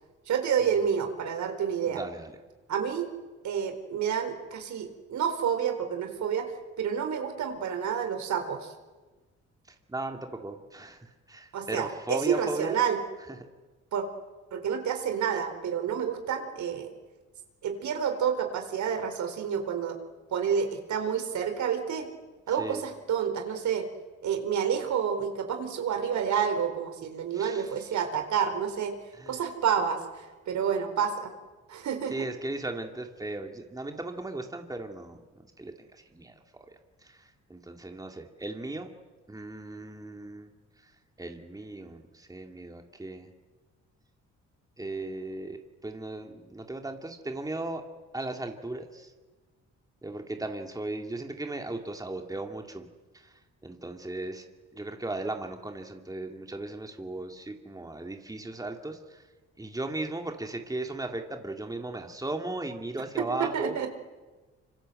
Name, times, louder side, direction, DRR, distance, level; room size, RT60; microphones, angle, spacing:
voice 1, 0.3-2.0 2.7-3.1 3.4-6.5 6.8-8.7 11.5-13.0 13.9-14.0 14.5-16.9 17.6-20.0 20.3-22.1 22.5-23.9 24.2-29.0 29.3-31.3 31.7-32.1 63.2-63.9, right 7 dB, 70° right, 6 dB, 4.2 m, -29 dB
voice 2, 1.8-2.3 9.9-12.8 13.4-13.5 22.6-22.8 27.3-27.8 29.1-29.4 32.1-36.3 37.0-38.9 39.3-40.5 41.2-43.3 44.8-47.8 48.1-49.1 50.0-52.9 53.1-53.3 53.6-54.4 54.7-59.2 59.6-63.7, right 2 dB, 10° right, 4 dB, 2.7 m, -37 dB
26.0 x 25.5 x 7.9 m, 1.3 s
cardioid pair, 90°, 30 cm